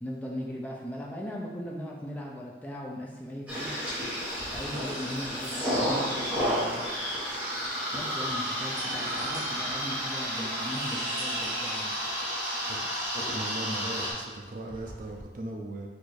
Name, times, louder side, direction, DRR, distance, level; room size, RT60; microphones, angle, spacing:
voice 1, 0.0-3.7 4.5-6.8 7.9-11.9, equal, 10° left, -2 dB, 0.5 m, -38 dB
sound 1, 3.5-14.1, equal, 5° right, 1.1 m, -31 dB
sound 2, 4.3-15.2, equal, 25° right, 1.4 m, -49 dB
voice 2, 13.1-15.9, right 2 dB, 45° right, 2 dB, 0.4 m, -38 dB
4.2 x 2.6 x 4.7 m, 1.2 s
head